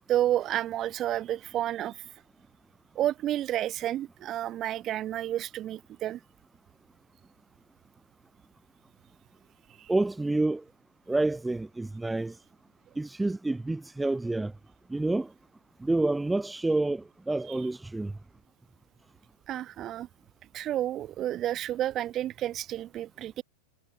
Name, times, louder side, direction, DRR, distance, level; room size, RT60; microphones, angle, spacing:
voice 1, 0.1-2.0 3.0-6.2 9.8-9.9 17.5-17.6 19.5-20.1 20.5-23.4, right 12 dB, 30° right, 2.0 m, -30 dB
voice 2, 9.9-10.6 11.1-12.4 13.0-14.5 14.9-15.3 15.8-18.1, right 2 dB, 5° right, 0.6 m, -28 dB
figure-of-eight pair, 90°, 0 cm